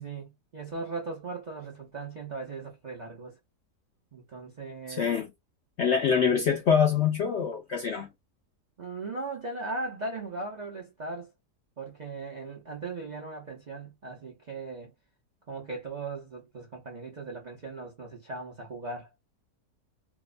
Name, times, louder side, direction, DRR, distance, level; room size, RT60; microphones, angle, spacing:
voice 1, 0.0-3.4 4.1-5.2 8.8-11.3 11.8-14.9 15.5-19.1, right 3 dB, 80° right, 0.4 m, -38 dB
voice 2, 4.9-5.3 5.8-8.1, left 7 dB, 70° left, 0.6 m, -25 dB
2.9 x 2.1 x 2.4 m
omnidirectional pair, 1.8 m